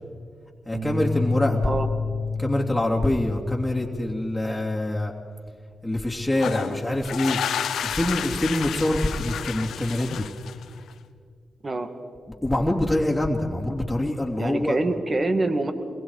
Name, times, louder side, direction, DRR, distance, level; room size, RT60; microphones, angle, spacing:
voice 1, 0.6-1.6 2.4-5.1 5.8-7.4 7.8-10.3 12.4-14.8, left 1 dB, 10° left, -2 dB, 3.0 m, -25 dB
Bass guitar, 0.7-5.2 5.6-7.0, left 4 dB, 70° right, 3.4 m, -31 dB
sound 1, 6.3-10.9, left 8 dB, 80° left, 0.8 m, -31 dB
voice 2, 14.4-15.7, right 2 dB, 40° right, 8 dB, 2.1 m, -25 dB
28.5 x 22.0 x 4.9 m, 2.1 s
supercardioid pair, 45°, 0 cm